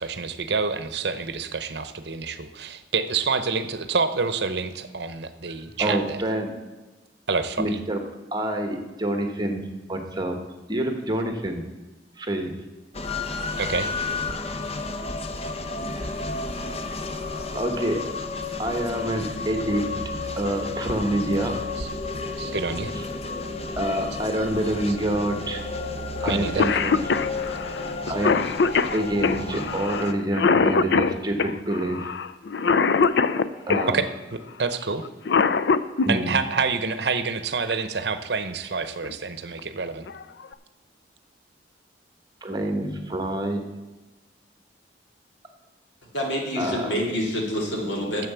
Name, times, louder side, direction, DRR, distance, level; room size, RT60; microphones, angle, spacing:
voice 1, 0.0-6.2 7.3-7.8 13.6-13.9 21.8-21.9 22.4-22.9 26.3-26.7 33.9-35.0 36.1-40.1, right 4 dB, 65° right, 11 dB, 0.8 m, -27 dB
voice 2, 5.8-6.5 7.6-8.0 8.3-9.6 9.9-10.4 10.7-11.6 12.2-12.5 15.9-16.2 17.3-18.0 18.6-19.9 20.4-21.6 23.0-23.1 23.8-25.6 26.2-27.0 28.1-28.4 28.9-32.1 33.7-34.0 36.0-36.3 42.4-43.6 46.6-46.9, right 1 dB, 20° right, 5 dB, 1.2 m, -27 dB
sound 1, 12.9-30.1, left 3 dB, 35° left, 0.7 m, -32 dB
Cough, 26.3-26.4 26.6-33.9 35.0-36.1 37.7-37.8 38.8-39.1 39.6-39.7 40.1-40.5, left 5 dB, 65° left, 0.5 m, -22 dB
voice 3, 46.1-48.3, equal, 85° left, 0 dB, 2.8 m, -27 dB
9.4 x 7.4 x 6.9 m, 1.2 s
head